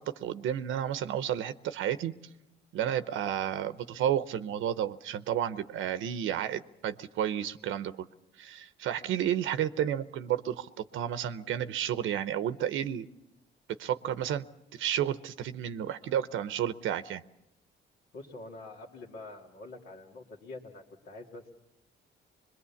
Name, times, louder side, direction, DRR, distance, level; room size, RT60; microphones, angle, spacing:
voice 1, 0.0-2.1 2.7-8.1 8.4-13.1 13.8-14.4 14.7-17.2, right 10 dB, 80° right, 12 dB, 0.8 m, -31 dB
voice 2, 18.1-21.5, left 2 dB, 80° left, -1 dB, 2.2 m, -46 dB
23.0 x 21.5 x 7.1 m, 0.89 s
cardioid pair, 90°, 20 cm